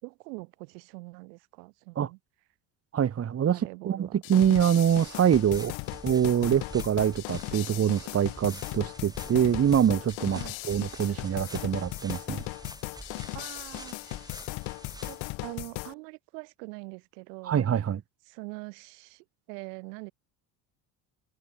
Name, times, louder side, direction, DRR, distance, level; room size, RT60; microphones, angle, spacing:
voice 1, 0.0-2.2 3.5-4.2 10.3-10.6 13.3-14.3 15.0-17.6 18.3-20.1, right 28 dB, 90° right, 6.5 m, -43 dB
voice 2, 2.9-3.6 3.8-5.7 6.0-12.4 17.4-18.0, right 9 dB, 30° right, 1.0 m, -25 dB
sound 1, 4.2-15.9, left 26 dB, 80° left, 2.3 m, -37 dB
sound 2, 4.7-15.3, right 1 dB, 10° right, 5.5 m, -48 dB
supercardioid pair, 85°, 46 cm